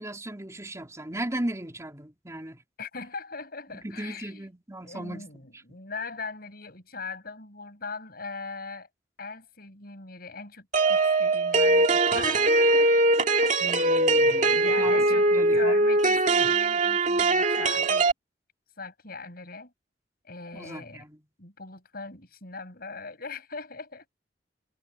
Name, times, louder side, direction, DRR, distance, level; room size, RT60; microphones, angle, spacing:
voice 1, 0.0-2.6 3.7-5.3 5.7-5.8 13.6-15.8 16.4-16.5 20.5-21.2, right 1 dB, 15° right, 3.3 m, -37 dB
voice 2, 2.8-4.5 4.8-8.9 9.2-13.4 14.2-18.1 18.8-19.7 20.2-21.0 21.4-24.1, left 4 dB, 55° left, 6.9 m, -40 dB
sound 1, 10.7-18.1, right 2 dB, 45° right, 2.3 m, -22 dB
head